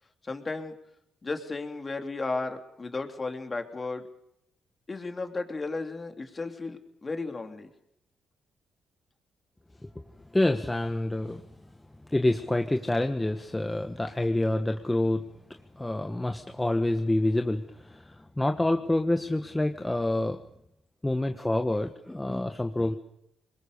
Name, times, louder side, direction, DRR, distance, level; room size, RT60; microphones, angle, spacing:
voice 1, 0.2-0.7 1.2-4.1 4.9-7.7, left 3 dB, 30° left, 5 dB, 3.2 m, -34 dB
voice 2, 10.3-11.4 12.1-15.2 15.7-20.4 21.0-23.0, left 1 dB, 15° left, 6 dB, 1.4 m, -27 dB
25.0 x 21.5 x 6.8 m, 0.78 s
supercardioid pair, 65°, 0 cm